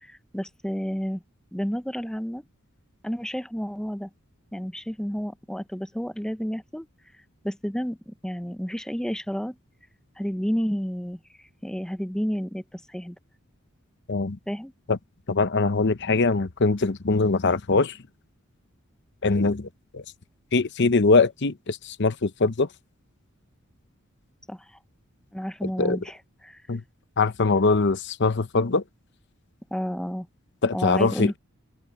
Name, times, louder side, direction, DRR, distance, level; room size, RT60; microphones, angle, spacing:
voice 1, 0.0-1.2 1.5-2.4 3.0-4.1 4.5-6.9 7.4-9.6 10.2-11.2 11.6-13.2 14.5-14.7 24.5-24.6 25.3-26.2 26.4-26.6 29.7-30.3 30.7-31.4, equal, 5° left, 0.7 m, -30 dB
voice 2, 15.3-18.0 19.2-20.0 20.5-22.7 25.6-26.0 26.7-26.8 27.2-28.8 30.6-31.3, left 3 dB, 55° left, 0.9 m, -22 dB
head